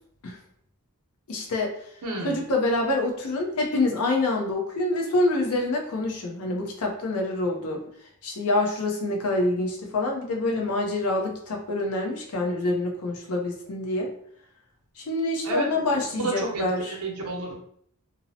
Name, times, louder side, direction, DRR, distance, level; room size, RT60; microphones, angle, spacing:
voice 1, 1.3-1.7 2.2-7.8 8.2-14.1 15.0-17.0, left 2 dB, 75° left, 1 dB, 0.6 m, -26 dB
voice 2, 2.0-2.4 15.4-15.8 16.1-17.5, right 2 dB, 80° right, -1 dB, 0.7 m, -31 dB
2.6 x 2.0 x 2.7 m, 0.66 s
head